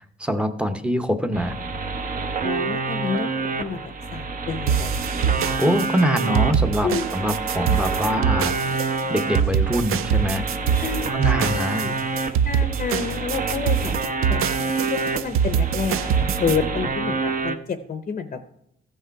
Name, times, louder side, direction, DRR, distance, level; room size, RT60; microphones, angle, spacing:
voice 1, 0.0-1.6 5.6-8.8 9.1-10.8 11.1-11.8, equal, 5° right, 8 dB, 0.8 m, -24 dB
sound 1, 1.3-17.6, right 4 dB, 40° right, 0.9 m, -28 dB
voice 2, 2.4-3.8 4.1-5.6 6.8-7.1 7.6-8.0 10.8-11.9 12.4-13.9 14.3-14.4 14.9-18.5, left 5 dB, 40° left, 10 dB, 0.7 m, -29 dB
sound 2, 4.7-16.6, right 8 dB, 90° right, 0.6 m, -24 dB
14.5 x 6.4 x 4.6 m, 0.78 s
wide cardioid pair, 145°, 21 cm